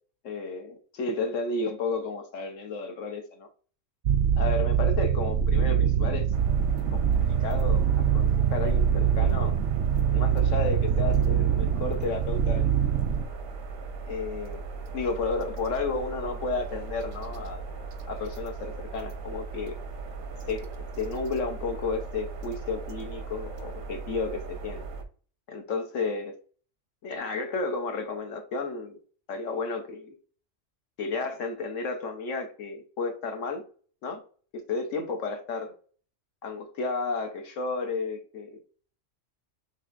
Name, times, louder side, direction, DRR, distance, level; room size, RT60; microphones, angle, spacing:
voice 1, 0.2-3.5 4.4-6.3 6.9-9.5 10.1-12.9 14.1-14.6 14.9-17.6 18.1-19.8 20.5-20.7 21.0-24.8 25.5-26.3 27.0-29.0 29.3-30.1 31.0-33.6 34.0-34.2 34.5-35.7 36.4-38.6, left 3 dB, 70° left, 4 dB, 1.3 m, -32 dB
sound 1, 4.1-13.2, right 8 dB, 70° right, 0.8 m, -24 dB
sound 2, 6.3-25.0, right 4 dB, 90° right, 1.2 m, -38 dB
7.1 x 2.9 x 2.5 m, 0.42 s
omnidirectional pair, 1.4 m